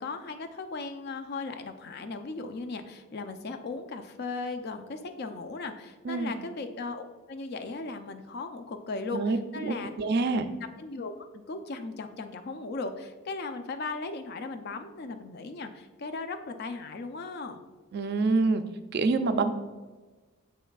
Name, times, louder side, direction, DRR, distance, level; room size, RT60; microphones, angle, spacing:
voice 1, 0.0-9.9 10.3-17.6, left 3 dB, 45° left, 8 dB, 0.4 m, -37 dB
voice 2, 9.1-10.5 17.9-18.6 18.9-19.5, right 3 dB, 50° right, 9 dB, 0.3 m, -26 dB
7.1 x 5.7 x 2.3 m, 1.3 s
head